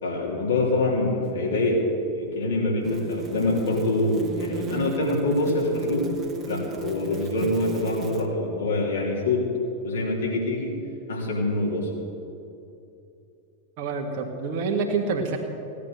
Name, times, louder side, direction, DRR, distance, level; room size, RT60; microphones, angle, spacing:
voice 1, 0.0-1.8 2.1-6.1 6.5-9.5 9.8-10.7 11.1-11.9, left 2 dB, 65° left, -1 dB, 3.3 m, -25 dB
sound 1, 1.2-1.3 2.8-8.3, right 4 dB, 25° right, 1.1 m, -36 dB
voice 2, 13.8-15.4, right 4 dB, 45° right, 0 dB, 1.7 m, -27 dB
17.0 x 10.0 x 6.7 m, 2.7 s
figure-of-eight pair, 90°, 0 cm